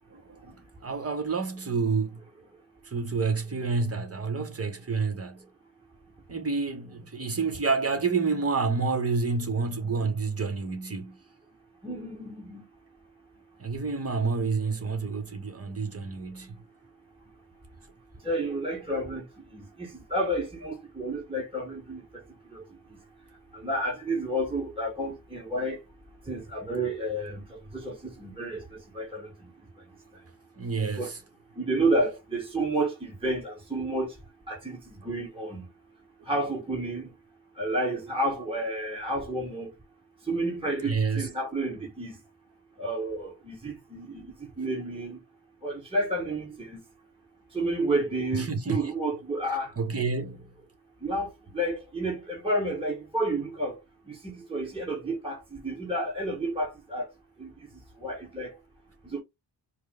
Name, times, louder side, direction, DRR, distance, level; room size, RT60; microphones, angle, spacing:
voice 1, 0.0-2.2 2.9-5.5 6.3-11.2 13.6-16.6 30.6-31.2 40.8-41.3 48.3-48.9 49.8-50.5, right 4 dB, 30° right, 1.0 m, -29 dB
voice 2, 11.8-12.6 18.2-19.2 19.5-22.0 22.5-22.6 23.5-25.8 26.3-29.3 31.0-31.1 31.6-34.1 34.5-35.6 36.3-37.1 37.6-39.7 40.2-42.2 42.8-45.2 45.6-46.8 47.5-49.7 51.0-53.8 54.1-57.1 57.4-57.5 58.0-58.5 59.0-59.2, right 1 dB, 10° right, 1.5 m, -30 dB
4.6 x 2.1 x 3.4 m
wide cardioid pair, 100°, 46 cm